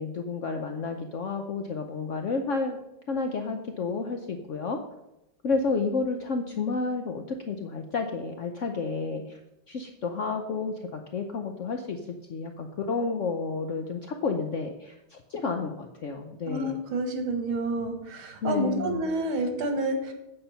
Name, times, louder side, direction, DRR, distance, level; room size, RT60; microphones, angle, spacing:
voice 1, 0.0-2.8 3.1-4.8 5.4-9.4 9.7-12.0 12.3-16.8 18.4-19.0, left 4 dB, 70° left, 5 dB, 0.7 m, -31 dB
voice 2, 16.5-20.1, right 2 dB, 80° right, 6 dB, 2.2 m, -29 dB
8.7 x 7.7 x 5.6 m, 0.92 s
omnidirectional pair, 2.2 m